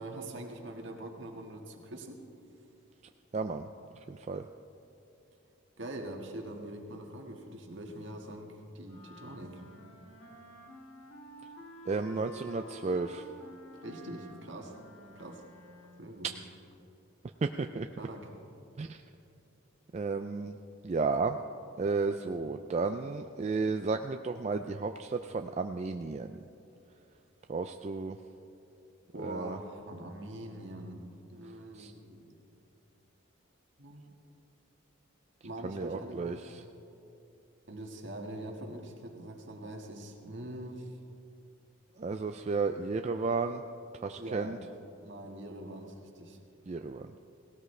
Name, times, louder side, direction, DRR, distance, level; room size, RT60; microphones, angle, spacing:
voice 1, 0.0-2.2 5.8-9.6 13.8-14.8 15.1-15.4 16.0-16.3 18.0-18.3 29.1-31.0 31.3-32.4 33.8-34.0 35.4-36.5 37.7-41.0 44.2-44.6 45.0-46.4, right 1 dB, 60° right, 2 dB, 1.6 m, -43 dB
voice 2, 3.3-3.7 4.1-4.4 11.9-13.3 17.4-17.9 18.8-19.0 19.9-20.6 20.8-21.4 21.8-26.4 27.5-28.2 29.2-29.6 31.7-31.9 35.6-36.4 42.0-43.6 44.0-44.6 46.7-47.1, right 4 dB, 35° right, 6 dB, 0.3 m, -33 dB
sound 1, 8.8-16.2, right 1 dB, 80° left, 2.0 m, -51 dB
17.5 x 17.5 x 3.3 m, 2.7 s
head